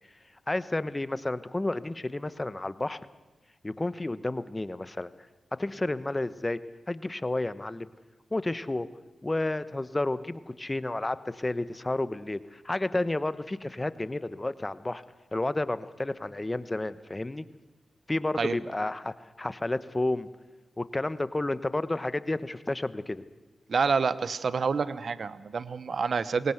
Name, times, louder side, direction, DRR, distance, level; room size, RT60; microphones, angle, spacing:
voice 1, 0.5-3.0 3.6-5.1 5.6-6.6 6.9-7.9 8.3-8.9 9.2-15.0 15.3-17.4 18.1-20.3 20.8-23.2, left 2 dB, 25° left, 14 dB, 1.1 m, -31 dB
voice 2, 23.7-26.5, right 5 dB, 65° right, 16 dB, 0.9 m, -28 dB
20.5 x 18.5 x 8.0 m, 1.1 s
supercardioid pair, 40°, 0 cm